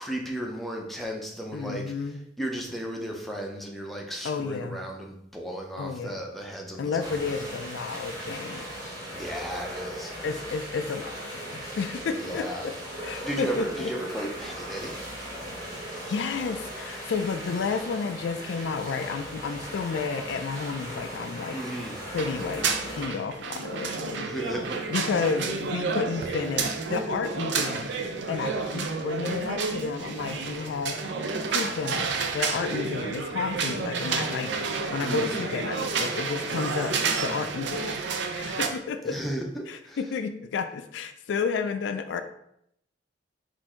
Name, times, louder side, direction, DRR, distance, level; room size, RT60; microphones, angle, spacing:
voice 1, 0.0-7.2 9.1-10.1 12.2-12.7 13.2-15.0 21.5-22.0 24.2-24.8 35.0-35.5 39.0-40.0, right 1 dB, ahead, -1 dB, 0.6 m, -35 dB
voice 2, 1.5-2.2 4.2-4.8 5.8-6.2 6.8-8.7 10.2-12.7 13.0-13.9 16.1-21.6 22.1-24.3 24.9-31.0 31.5-38.0 38.3-39.2 39.7-42.2, left 5 dB, 65° left, 8 dB, 0.3 m, -31 dB
sound 1, 7.0-23.0, equal, 20° right, 1.2 m, -38 dB
sound 2, 22.1-38.7, right 4 dB, 65° right, 0.5 m, -30 dB
4.4 x 2.6 x 4.3 m, 0.75 s
head